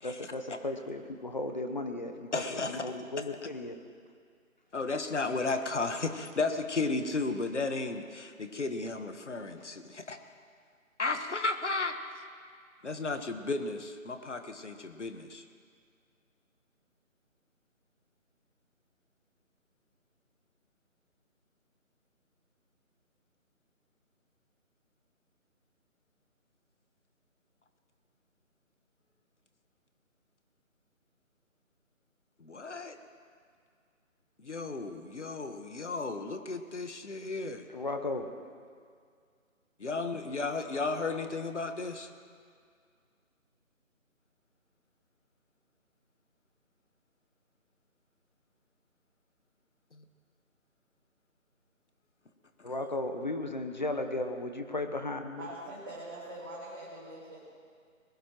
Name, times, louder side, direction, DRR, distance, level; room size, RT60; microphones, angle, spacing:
voice 1, 0.0-3.8 37.7-38.3 52.6-55.5, left 2 dB, 35° left, 6 dB, 0.9 m, -35 dB
voice 2, 2.3-2.9 4.7-10.2 11.0-12.0 12.8-15.4 32.4-33.0 34.4-37.6 39.8-42.1 49.9-50.0, left 3 dB, 55° left, 8 dB, 1.4 m, -34 dB
voice 3, 55.4-57.4, right 1 dB, 15° right, -8 dB, 1.9 m, -43 dB
21.0 x 16.5 x 3.1 m, 2.1 s
figure-of-eight pair, 160°, 41 cm